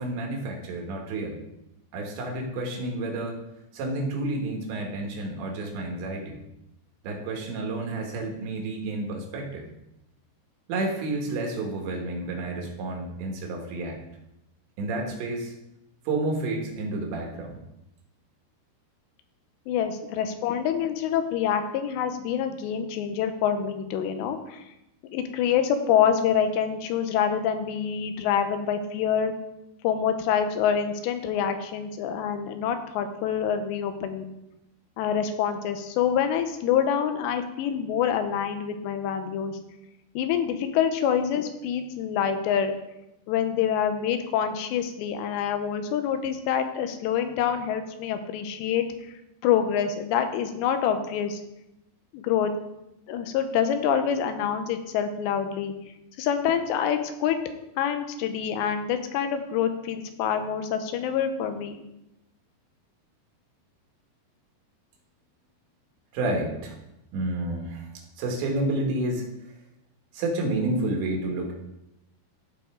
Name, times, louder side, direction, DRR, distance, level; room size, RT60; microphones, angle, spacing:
voice 1, 0.0-1.4 1.9-3.4 3.7-6.4 7.0-9.7 10.7-14.0 14.8-15.6 16.1-17.6 66.1-66.8 67.1-67.9 68.2-69.2 70.1-71.5, right 2 dB, 90° right, 0 dB, 3.8 m, -30 dB
voice 2, 19.7-24.6 25.0-29.3 29.8-34.3 35.0-39.6 40.2-42.7 43.3-48.8 49.4-51.4 52.1-52.5 53.1-55.7 56.2-57.4 57.8-61.8, left 8 dB, 90° left, 8 dB, 3.0 m, -26 dB
14.0 x 5.0 x 3.7 m, 0.89 s
omnidirectional pair, 4.9 m